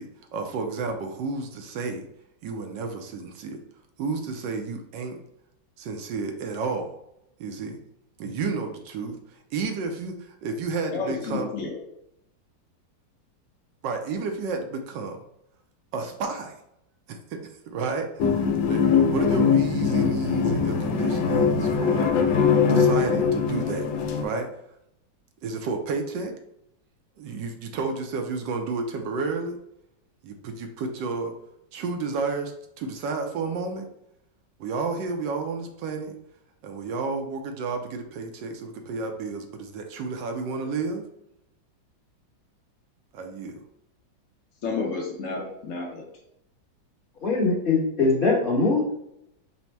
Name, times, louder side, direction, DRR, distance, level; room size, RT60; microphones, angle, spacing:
voice 1, 0.0-2.0 2.4-3.6 4.0-5.2 5.8-7.0 7.4-7.8 8.2-9.2 9.5-11.5 13.8-15.2 15.9-16.6 17.1-22.1 22.6-23.9 24.2-24.5 25.4-26.3 27.2-29.6 30.2-31.3 31.7-33.9 34.6-36.1 36.6-41.0 43.1-43.6, right 4 dB, 75° right, 5 dB, 1.2 m, -31 dB
voice 2, 10.9-11.7 44.6-46.0, left 4 dB, 60° left, -1 dB, 0.8 m, -31 dB
sound 1, 18.2-24.2, left 6 dB, 80° left, 1.3 m, -22 dB
voice 3, 47.2-48.9, left 3 dB, 35° left, -5 dB, 1.0 m, -22 dB
4.1 x 2.1 x 4.4 m, 0.78 s
omnidirectional pair, 2.0 m